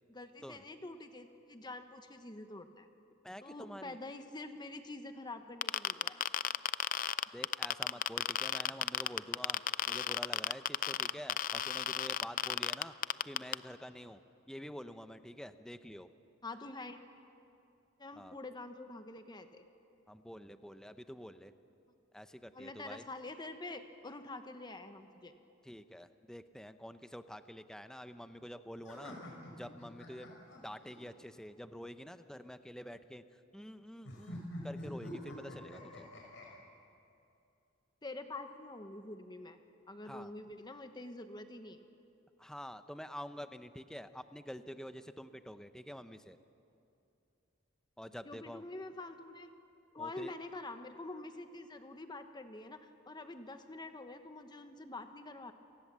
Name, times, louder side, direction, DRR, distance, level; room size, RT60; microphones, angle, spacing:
voice 1, 0.1-2.9 3.4-6.2 16.4-17.1 18.0-19.6 22.5-25.3 38.0-39.6 39.9-41.8 48.2-49.5 49.9-55.5, left 2 dB, 20° left, 7 dB, 1.1 m, -46 dB
voice 2, 3.2-4.0 7.3-9.6 9.9-12.9 13.3-14.2 14.5-16.1 18.2-18.4 20.1-21.5 22.1-23.1 25.6-29.2 29.5-30.3 30.6-33.2 33.5-36.1 40.0-40.3 42.4-46.4 48.0-48.6 50.0-50.3, equal, 5° left, 10 dB, 0.7 m, -47 dB
sound 1, 5.6-13.5, left 10 dB, 45° left, 0.5 m, -32 dB
sound 2, 28.8-31.0 34.0-36.5, left 1 dB, 65° left, 5.8 m, -46 dB
29.5 x 19.0 x 7.5 m, 2.7 s
head